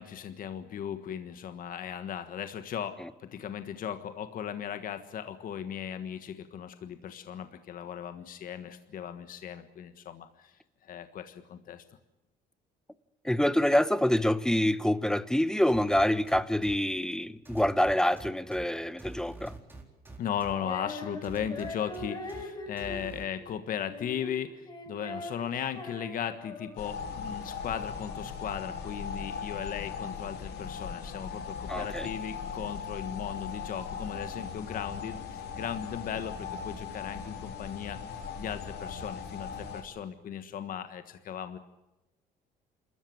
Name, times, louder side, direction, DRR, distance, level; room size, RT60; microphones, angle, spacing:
voice 1, 0.0-10.5 10.8-11.8 20.2-24.5 24.9-41.6, left 9 dB, 55° left, 1.5 m, -37 dB
voice 2, 13.2-19.6 31.7-32.1, left 1 dB, 5° left, 1.0 m, -26 dB
sound 1, 15.7-16.7 17.4-18.6 19.0-20.5 21.2-22.4 22.8-23.2, right 3 dB, 10° right, 4.4 m, -45 dB
Female singing, 20.5-27.0, left 2 dB, 25° left, 4.0 m, -42 dB
sound 2, 26.8-39.8, left 6 dB, 75° left, 3.1 m, -39 dB
27.5 x 14.0 x 9.4 m
cardioid pair, 110°, 17 cm